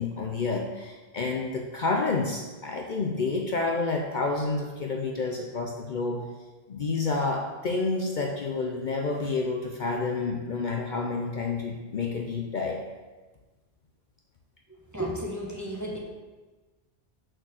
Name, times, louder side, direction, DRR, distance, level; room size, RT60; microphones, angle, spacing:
voice 1, 0.0-6.2 6.7-12.8, left 3 dB, 55° left, 2 dB, 0.7 m, -29 dB
voice 2, 14.9-16.0, equal, 15° right, -3 dB, 1.3 m, -33 dB
6.3 x 4.5 x 6.4 m, 1.2 s
omnidirectional pair, 1.1 m